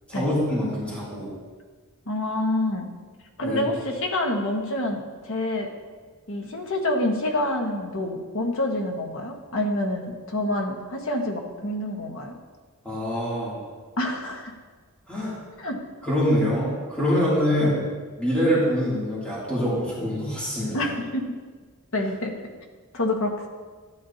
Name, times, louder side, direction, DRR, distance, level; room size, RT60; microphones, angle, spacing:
voice 1, 0.1-1.3 3.4-3.6 12.8-13.6 15.1-15.4 16.0-17.8 18.2-20.8, equal, 5° left, -9 dB, 2.8 m, -24 dB
voice 2, 2.1-2.9 3.4-5.7 6.3-12.4 14.0-14.5 15.6-15.8 17.6-17.8 20.7-21.3 21.9-22.4 22.9-23.5, left 1 dB, 65° left, 2 dB, 1.4 m, -27 dB
13.0 x 9.4 x 2.8 m, 1.4 s
head